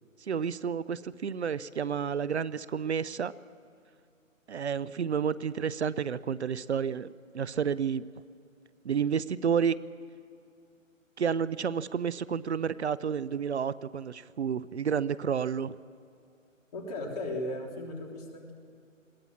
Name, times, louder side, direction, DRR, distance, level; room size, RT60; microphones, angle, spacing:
voice 1, 0.3-3.3 4.5-7.1 7.3-8.1 8.8-9.8 11.2-15.7, right 7 dB, 55° right, 18 dB, 0.6 m, -30 dB
voice 2, 16.7-18.5, left 1 dB, 30° left, 0 dB, 3.3 m, -36 dB
22.0 x 17.0 x 7.4 m, 2.5 s
figure-of-eight pair, 150°, 40 cm